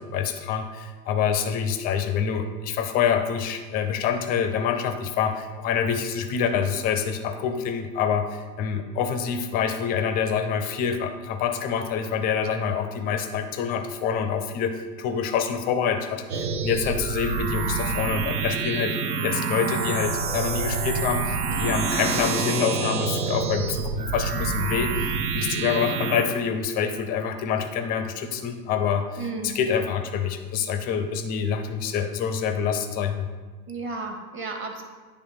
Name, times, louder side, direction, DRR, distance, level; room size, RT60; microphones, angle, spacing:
voice 1, 0.0-33.3, left 7 dB, 20° left, 7 dB, 0.4 m, -26 dB
sound 1, 16.3-26.3, right 5 dB, 70° right, 0.9 m, -27 dB
voice 2, 29.2-29.6 33.7-34.8, right 3 dB, 25° right, 3 dB, 1.1 m, -33 dB
9.4 x 3.3 x 4.8 m, 1.4 s
hypercardioid pair, 95°, 47 cm